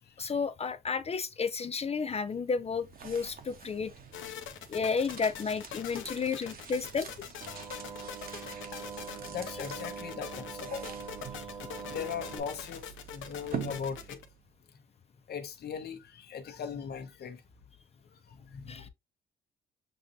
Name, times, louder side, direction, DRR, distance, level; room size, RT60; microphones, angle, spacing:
voice 1, 0.2-3.9 4.7-7.1 18.7-18.9, left 5 dB, 30° left, 0.5 m, -32 dB
sound 1, 2.3-14.5, right 7 dB, 45° right, 1.0 m, -46 dB
sound 2, 4.1-14.3, left 9 dB, 75° left, 1.0 m, -43 dB
sound 3, 7.4-12.4, right 5 dB, 90° right, 1.5 m, -43 dB
voice 2, 9.3-11.0 11.8-14.2 15.3-17.4 18.5-18.9, left 7 dB, 55° left, 1.1 m, -39 dB
6.8 x 2.6 x 2.7 m
cardioid pair, 90°, 20 cm